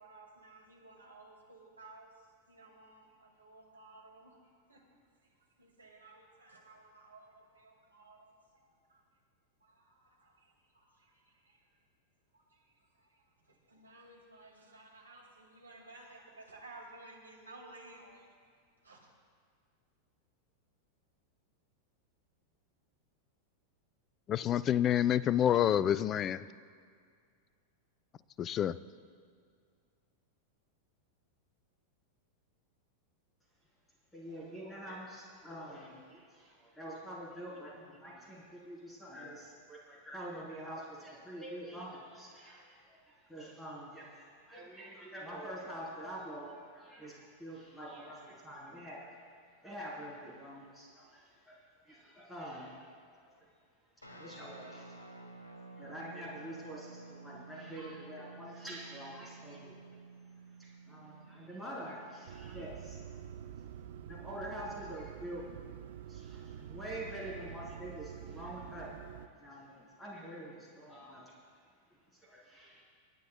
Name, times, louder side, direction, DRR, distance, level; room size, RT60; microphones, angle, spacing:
voice 1, 0.0-2.1 2.5-4.4 4.7-4.8 5.6-9.0 9.6-11.6 12.3-18.3 18.8-19.1, right 2 dB, 75° right, 0 dB, 1.9 m, -56 dB
voice 2, 24.3-26.5 28.4-28.8, left 10 dB, 30° left, 18 dB, 0.3 m, -28 dB
voice 3, 34.1-49.3 49.6-51.6 51.8-52.9 53.2-53.3 54.1-54.9 55.5-59.8 60.6-63.2 64.0-65.5 66.1-68.9 69.4-71.3 72.2-72.8, right 1 dB, 10° left, -5 dB, 3.3 m, -46 dB
Guitar, 54.0-63.1, right 3 dB, 80° left, 1.0 m, -52 dB
sound 1, 62.3-69.3, right 9 dB, 60° right, 0.5 m, -47 dB
28.0 x 9.6 x 2.2 m, 2.1 s
figure-of-eight pair, 90°, 0 cm